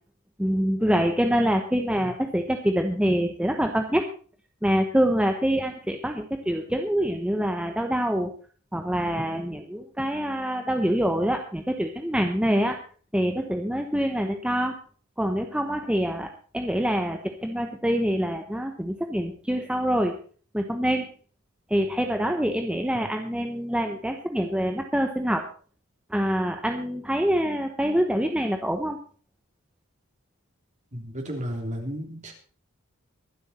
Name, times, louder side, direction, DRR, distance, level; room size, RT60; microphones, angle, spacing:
voice 1, 0.4-4.1 4.6-8.3 8.7-12.8 13.1-14.8 15.2-20.2 20.5-21.1 21.7-25.5 26.1-29.0, equal, 5° right, 4 dB, 1.0 m, -25 dB
voice 2, 30.9-32.3, equal, 35° right, 2 dB, 3.4 m, -33 dB
23.0 x 8.0 x 4.3 m, 0.43 s
head